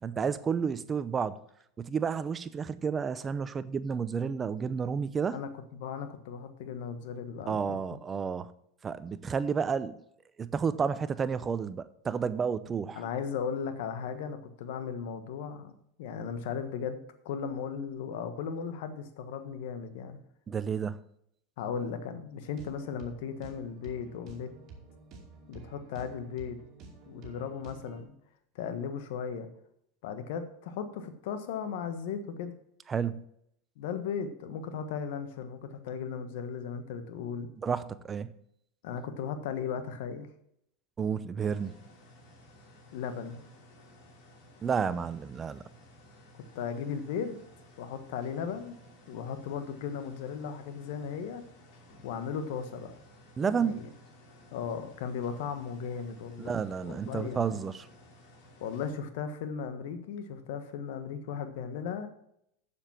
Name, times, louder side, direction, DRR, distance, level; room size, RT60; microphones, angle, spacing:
voice 1, 0.0-1.4 1.8-5.4 7.5-8.5 8.8-10.0 10.4-13.0 20.5-21.0 32.9-33.2 37.6-38.3 41.0-41.7 44.6-45.6 53.4-53.8 56.4-57.9, right 6 dB, 25° right, 0.6 m, -31 dB
voice 2, 5.3-8.0 12.9-15.7 16.0-20.2 21.6-24.5 25.5-26.6 27.1-28.1 28.5-29.5 30.0-32.5 33.8-37.5 38.8-40.3 42.9-43.4 46.5-47.4 47.8-48.8 49.1-51.4 52.0-53.0 53.4-53.9 54.5-56.6 56.8-57.6 58.6-62.1, left 7 dB, 70° left, 1.4 m, -36 dB
sound 1, 22.4-28.0, right 4 dB, 45° right, 2.7 m, -50 dB
sound 2, 41.4-58.9, left 1 dB, 55° left, 3.2 m, -56 dB
7.4 x 7.0 x 7.3 m
supercardioid pair, 120°, 0 cm